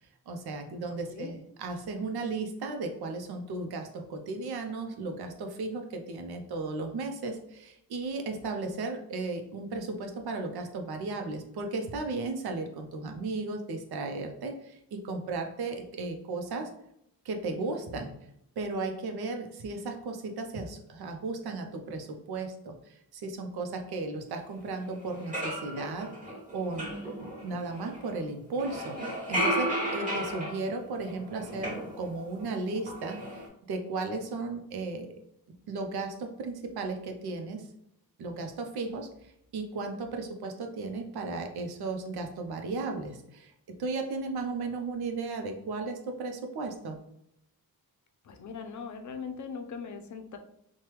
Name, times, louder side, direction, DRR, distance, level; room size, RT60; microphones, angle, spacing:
voice 1, 0.3-16.7 17.2-18.1 18.6-26.1 26.5-26.9 27.2-33.4 33.7-35.1 35.7-37.7 38.2-43.5 43.8-47.0, right 3 dB, 85° right, 4 dB, 0.6 m, -35 dB
sound 1, 24.7-24.8 25.1-28.2 28.5-32.5 32.7-33.5, right 1 dB, 20° right, 1.4 m, -34 dB
voice 2, 48.2-50.4, left 5 dB, 50° left, 5 dB, 0.5 m, -40 dB
3.2 x 2.2 x 3.0 m, 0.76 s
cardioid pair, 105°, 37 cm